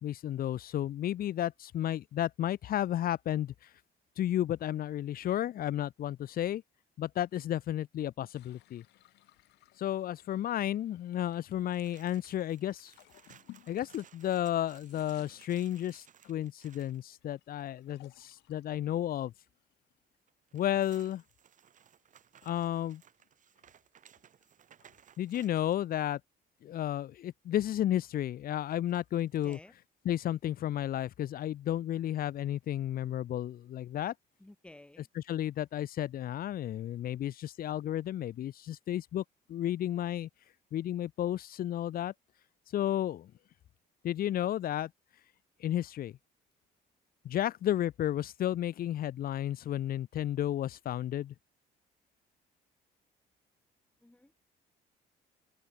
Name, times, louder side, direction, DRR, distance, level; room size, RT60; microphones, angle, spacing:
voice 1, 0.0-3.7 4.2-6.6 7.0-8.8 9.8-12.9 13.7-19.3 20.5-21.2 22.4-23.0 25.2-26.2 26.6-29.6 30.0-34.1 35.0-40.3 40.7-42.1 42.7-43.3 44.0-44.9 45.6-46.1 47.2-51.3, left 12 dB, 60° left, 1.8 m, -32 dB
sound 1, 8.3-11.9 12.7-14.4 14.7-16.2 16.7-20.1, left 18 dB, 85° left, 6.5 m, -60 dB
sound 2, 11.5-17.0 20.3-25.8 28.9-29.6, right 9 dB, 50° right, 7.4 m, -61 dB
voice 2, 34.4-35.1 54.0-54.5, left 1 dB, 5° left, 1.3 m, -54 dB
open air
cardioid pair, 110°, 17 cm